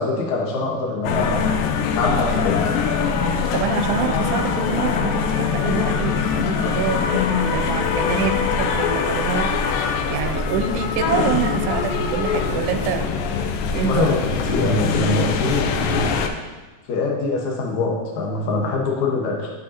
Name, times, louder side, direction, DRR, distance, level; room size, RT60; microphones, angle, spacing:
voice 1, 0.0-1.5 1.9-2.6 13.7-16.1 16.9-19.5, left 3 dB, 60° left, -1 dB, 2.0 m, -23 dB
sound 1, 1.0-16.3, left 5 dB, 90° left, 2.0 m, -22 dB
voice 2, 3.5-13.1 13.7-14.2, right 7 dB, 85° right, 6 dB, 2.6 m, -26 dB
11.5 x 7.7 x 2.8 m, 1.3 s
omnidirectional pair, 4.6 m